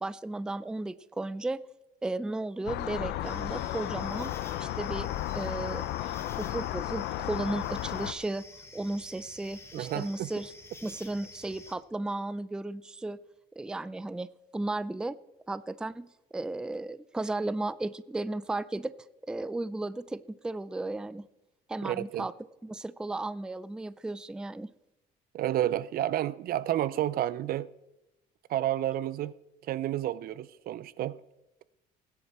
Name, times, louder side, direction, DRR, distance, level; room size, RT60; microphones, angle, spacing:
voice 1, 0.0-1.6 2.0-4.3 4.6-5.1 5.3-5.8 6.3-8.4 8.7-10.5 10.8-13.2 13.6-14.3 14.5-15.2 15.5-18.9 19.3-21.3 21.7-22.3 22.6-24.7, right 2 dB, 5° right, 0.4 m, -34 dB
sound 1, 2.7-8.1, left 14 dB, 85° left, 0.7 m, -34 dB
sound 2, 3.2-11.8, left 2 dB, 15° left, 1.6 m, -50 dB
voice 2, 9.7-10.3 21.8-22.3 25.3-27.7 28.5-29.3 29.7-31.2, right 13 dB, 60° right, 0.5 m, -30 dB
18.0 x 10.0 x 4.3 m
cardioid pair, 110°, 17 cm